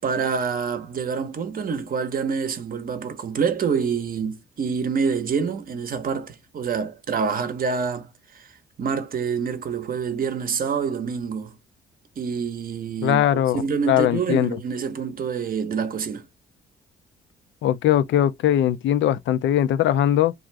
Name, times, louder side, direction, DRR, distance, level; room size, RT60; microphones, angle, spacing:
voice 1, 0.0-8.1 8.3-8.5 8.8-11.6 12.2-13.2 13.5-16.3, right 6 dB, 45° right, 0.7 m, -26 dB
voice 2, 13.0-13.6 13.9-14.6 17.6-20.3, left 11 dB, 70° left, 0.4 m, -20 dB
2.5 x 2.5 x 3.2 m
cardioid pair, 90°, 20 cm